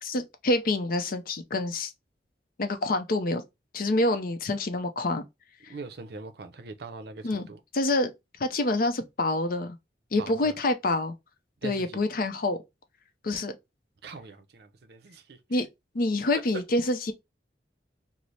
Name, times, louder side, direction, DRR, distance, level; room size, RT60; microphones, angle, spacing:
voice 1, 0.0-1.9 2.6-3.4 3.7-5.2 5.6-5.7 7.2-7.5 7.7-8.1 8.4-9.8 10.1-11.1 11.6-12.6 13.2-13.5 15.5-15.7 15.9-17.1, left 2 dB, 55° left, 0.5 m, -27 dB
voice 2, 5.7-7.6 10.2-10.5 11.6-12.0 14.0-15.4, right 3 dB, 65° right, 0.5 m, -42 dB
3.1 x 2.0 x 3.9 m
head